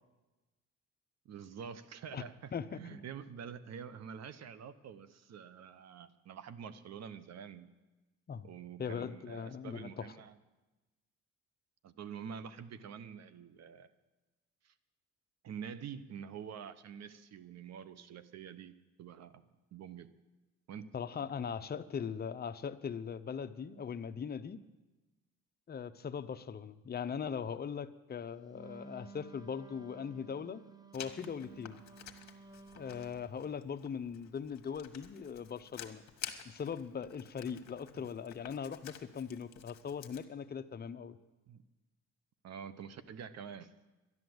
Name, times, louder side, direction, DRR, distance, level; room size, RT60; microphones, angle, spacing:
voice 1, 1.2-7.7 8.4-10.4 11.8-13.9 14.6-14.7 15.4-19.4 19.7-20.1 20.7-20.9 37.9-38.1 41.5-41.6 42.4-43.7, right 7 dB, 60° right, 14 dB, 0.9 m, -47 dB
voice 2, 2.5-3.0 8.3-8.5 8.8-10.1 20.9-24.6 25.7-30.6 30.9-31.8 32.8-36.0 36.4-41.2, left 7 dB, 30° left, 10 dB, 0.7 m, -40 dB
Wind instrument woodwind instrument, 28.5-33.2, right 5 dB, 15° right, 0.9 m, -54 dB
Writing, 30.9-40.2, left 9 dB, 60° left, 1.3 m, -51 dB
11.5 x 11.0 x 7.9 m, 1.1 s
cardioid pair, 90°, 30 cm